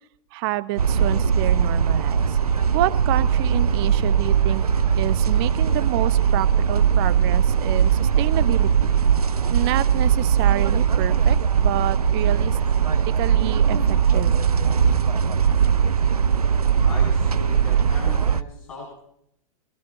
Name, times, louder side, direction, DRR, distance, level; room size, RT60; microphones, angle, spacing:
voice 1, 0.3-2.4 2.7-4.6 4.9-8.9 9.5-12.6 13.1-14.5, right 16 dB, 40° right, 14 dB, 0.8 m, -28 dB
sound 1, 0.8-18.4, right 7 dB, 80° right, 0.5 m, -20 dB
voice 2, 16.8-19.0, left 3 dB, 70° left, -3 dB, 6.3 m, -38 dB
22.5 x 16.5 x 2.7 m, 0.73 s
figure-of-eight pair, 105°, 19 cm